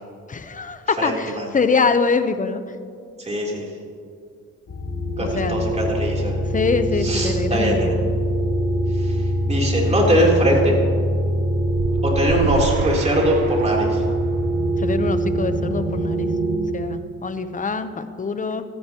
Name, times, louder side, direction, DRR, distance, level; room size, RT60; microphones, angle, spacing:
voice 1, 0.3-2.8 5.2-5.7 6.5-7.9 14.8-16.3 16.7-18.6, left 4 dB, 25° left, 10 dB, 0.8 m, -24 dB
voice 2, 1.0-1.5 3.2-3.7 5.2-6.4 7.0-8.0 8.9-10.8 12.0-14.0, equal, 20° right, -2 dB, 3.5 m, -22 dB
sound 1, 4.7-16.6, right 1 dB, 50° left, 2.8 m, -23 dB
sound 2, 11.6-14.2, right 12 dB, 80° right, 0.5 m, -29 dB
15.5 x 14.0 x 3.0 m, 2.3 s
cardioid pair, 90°, 30 cm